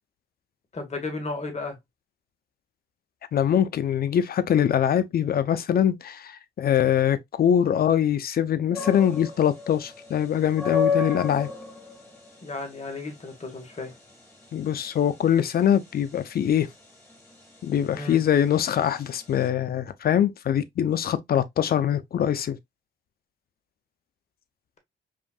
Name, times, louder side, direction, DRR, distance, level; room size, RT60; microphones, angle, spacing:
voice 1, 0.7-1.8 12.4-13.9 17.9-18.2, left 3 dB, 35° left, 1.5 m, -34 dB
voice 2, 3.3-11.5 14.5-16.7 17.6-22.6, left 9 dB, 50° left, 0.6 m, -23 dB
sound 1, 8.7-19.5, left 5 dB, 15° left, 1.9 m, -33 dB
5.0 x 2.6 x 2.3 m
cardioid pair, 90°, 20 cm